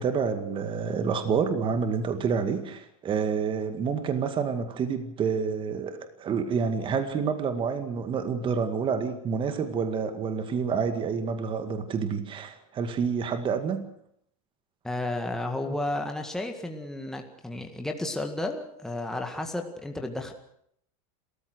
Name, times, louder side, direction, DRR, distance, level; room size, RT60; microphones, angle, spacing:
voice 1, 0.0-13.9, right 6 dB, 25° right, 8 dB, 2.2 m, -28 dB
voice 2, 14.8-20.3, left 2 dB, 5° left, 3 dB, 1.9 m, -32 dB
30.0 x 14.5 x 6.5 m, 0.70 s
supercardioid pair, 135°, 19 cm